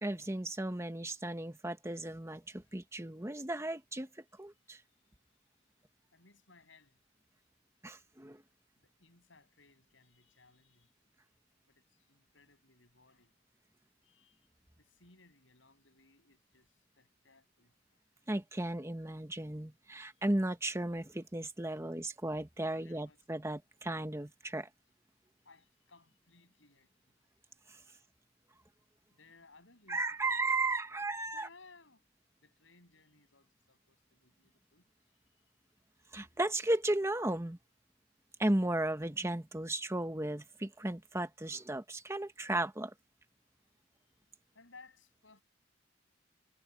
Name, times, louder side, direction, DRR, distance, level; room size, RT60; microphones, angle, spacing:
voice 1, 0.0-4.1 4.4-4.8 7.8-8.4 18.3-24.7 29.9-31.5 36.1-37.6 38.4-42.9, right 1 dB, 15° right, 1.2 m, -35 dB
voice 2, 4.6-5.5 6.1-7.0 8.8-10.9 11.6-13.4 14.0-14.5 14.8-17.8 20.1-20.3 21.7-21.8 22.7-23.2 25.4-27.1 27.9-28.0 29.1-32.0 32.4-35.2 44.5-45.4, left 3 dB, 80° left, 8.0 m, -63 dB
head